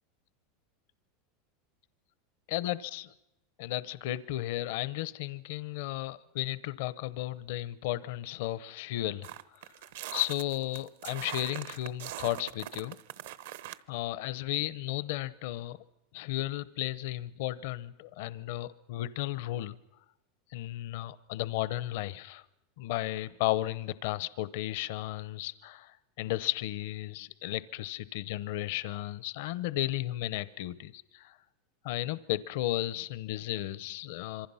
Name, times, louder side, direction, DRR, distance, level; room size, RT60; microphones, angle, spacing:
voice 1, 2.5-3.1 3.6-9.3 10.1-13.0 13.9-15.8 16.1-19.8 20.5-22.4 22.8-31.4 31.8-34.5, left 15 dB, 65° left, 17 dB, 0.8 m, -34 dB
sound 1, 9.2-13.8, right 13 dB, 80° right, 1.0 m, -42 dB
26.5 x 24.0 x 5.7 m, 0.91 s
supercardioid pair, 150°, 0 cm